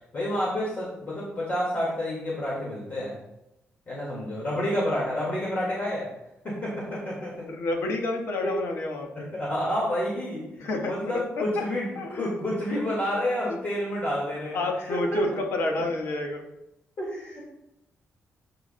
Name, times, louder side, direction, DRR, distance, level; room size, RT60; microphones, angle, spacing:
voice 1, 0.1-3.2 3.9-6.1 6.4-7.5 8.4-8.5 9.1-11.9 12.2-15.2 17.0-17.4, left 1 dB, 35° left, -5 dB, 1.9 m, -29 dB
voice 2, 7.5-9.3 10.6-11.2 12.0-12.3 13.5-13.6 14.5-16.4, left 2 dB, 70° left, 2 dB, 1.3 m, -29 dB
12.5 x 4.6 x 2.2 m, 0.87 s
cardioid pair, 145°, 5 cm